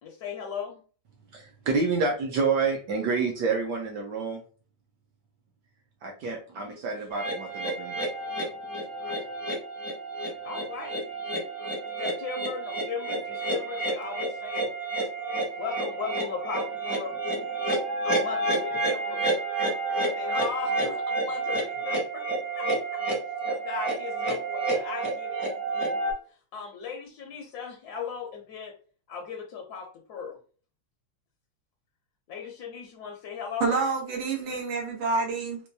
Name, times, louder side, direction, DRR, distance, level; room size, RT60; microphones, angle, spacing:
voice 1, 0.0-0.8 10.4-11.1 12.0-14.7 15.6-17.1 18.0-19.2 20.0-22.2 22.6-23.0 23.4-25.4 26.5-28.7 29.1-30.4 32.3-33.7 34.5-34.6, left 6 dB, 70° left, 1 dB, 0.9 m, -37 dB
voice 2, 1.3-4.4 6.0-8.0, right 4 dB, 70° right, 1 dB, 1.0 m, -28 dB
sound 1, 7.1-26.1, right 2 dB, ahead, 0.4 m, -30 dB
voice 3, 33.6-35.6, right 4 dB, 90° right, 0 dB, 1.9 m, -28 dB
4.4 x 2.3 x 2.6 m, 0.40 s
omnidirectional pair, 2.4 m